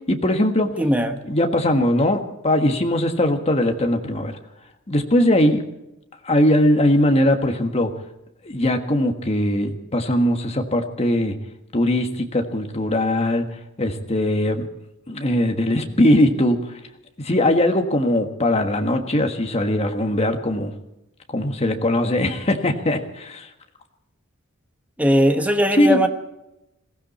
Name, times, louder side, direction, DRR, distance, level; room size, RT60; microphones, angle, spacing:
voice 1, 0.1-0.7 1.3-4.3 4.9-5.6 6.2-7.9 8.4-11.3 11.7-13.4 13.8-14.7 15.1-16.6 17.2-20.7 21.3-23.5 25.8-26.1, left 1 dB, 30° left, 5 dB, 1.5 m, -20 dB
voice 2, 0.8-1.2 25.0-26.1, equal, 5° right, 6 dB, 1.2 m, -19 dB
21.0 x 16.0 x 4.3 m, 0.89 s
head